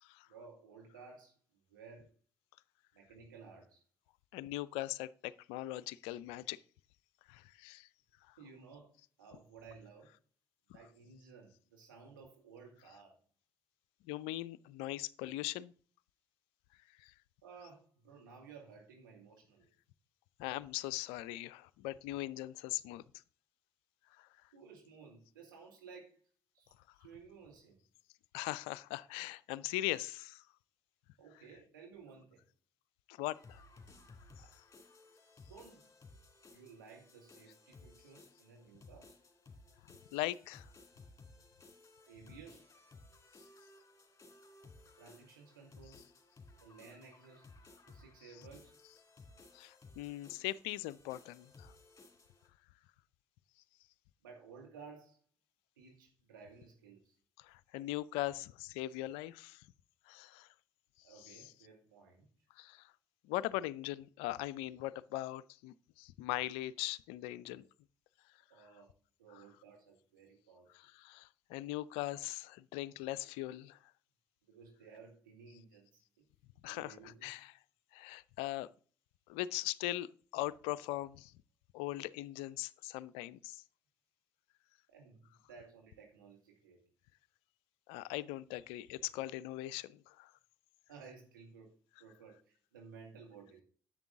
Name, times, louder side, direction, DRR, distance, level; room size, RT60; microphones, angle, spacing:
voice 1, 0.3-2.1 2.9-3.8 8.4-10.1 10.7-13.2 17.4-19.7 24.5-26.2 26.5-26.7 27.0-27.8 31.2-32.4 34.4-34.5 35.5-35.9 36.5-39.1 42.1-42.7 45.0-46.0 46.6-47.5 47.9-48.7 54.2-55.2 55.8-57.1 58.2-58.3 61.0-62.3 68.5-68.9 69.2-70.7 74.5-76.2 76.6-77.3 84.9-86.8 90.9-91.7 92.0-93.6, right 5 dB, 80° right, 2.1 m, -56 dB
voice 2, 4.3-6.6 7.3-7.9 8.3-8.4 14.0-15.7 17.0-17.1 20.4-23.0 24.2-24.3 28.3-30.4 33.1-33.6 34.4-34.5 40.1-40.7 49.5-51.7 57.4-59.7 60.1-60.5 61.2-61.5 62.6-62.9 63.2-67.6 69.3-69.4 70.7-73.8 76.6-77.5 77.9-78.7 79.3-81.3 81.7-83.6 87.9-90.3, left 16 dB, 70° left, 0.4 m, -40 dB
sound 1, 33.3-52.5, left 3 dB, 30° left, 2.4 m, -59 dB
10.5 x 7.4 x 3.6 m
figure-of-eight pair, 45°, 10 cm